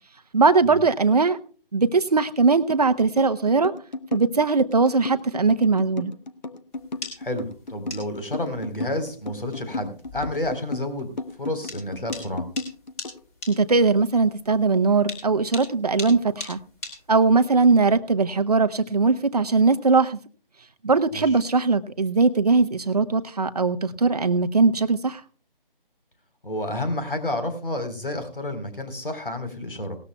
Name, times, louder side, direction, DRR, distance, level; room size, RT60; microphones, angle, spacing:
voice 1, 0.3-1.4 1.7-3.7 4.1-6.1 13.5-16.6 17.1-20.2 20.8-25.2, right 4 dB, 40° right, 10 dB, 0.9 m, -20 dB
sound 1, 2.7-13.2, left 2 dB, 50° left, 1.1 m, -34 dB
sound 2, 6.7-17.5, left 2 dB, 15° left, 2.6 m, -40 dB
voice 2, 7.2-11.1 11.4-12.4 21.1-21.3 26.4-30.0, left 1 dB, 65° left, 8 dB, 4.0 m, -30 dB
18.5 x 13.5 x 2.2 m, 0.39 s
figure-of-eight pair, 155°, 29 cm